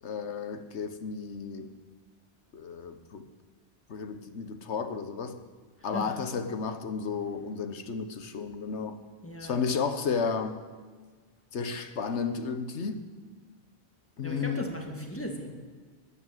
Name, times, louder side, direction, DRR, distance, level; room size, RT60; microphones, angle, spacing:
voice 1, 0.0-1.7 2.5-3.3 3.9-5.4 5.8-9.0 9.4-10.6 11.5-13.1 14.2-14.7, left 5 dB, 80° left, 1.4 m, -33 dB
voice 2, 5.8-6.1 9.2-9.6 14.2-15.5, equal, 10° left, 1.8 m, -37 dB
13.5 x 10.0 x 8.0 m
omnidirectional pair, 1.2 m